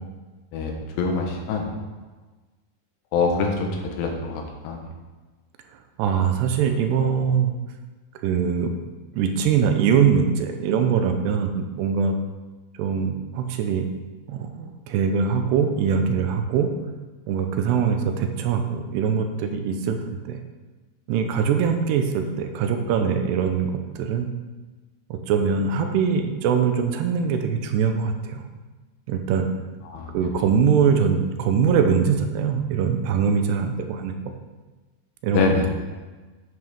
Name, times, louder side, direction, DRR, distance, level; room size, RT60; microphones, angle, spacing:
voice 1, 0.5-1.7 3.1-4.9 29.9-30.3 35.3-35.7, left 4 dB, 85° left, 2 dB, 3.4 m, -25 dB
voice 2, 6.0-7.5 8.2-8.8 9.1-12.1 12.8-13.9 14.3-16.7 17.3-20.0 20.3-20.4 21.1-24.3 25.1-28.4 29.1-29.5 30.1-34.3 35.2-35.7, right 6 dB, 85° right, 6 dB, 2.9 m, -22 dB
10.5 x 8.0 x 3.7 m, 1.3 s
omnidirectional pair, 4.8 m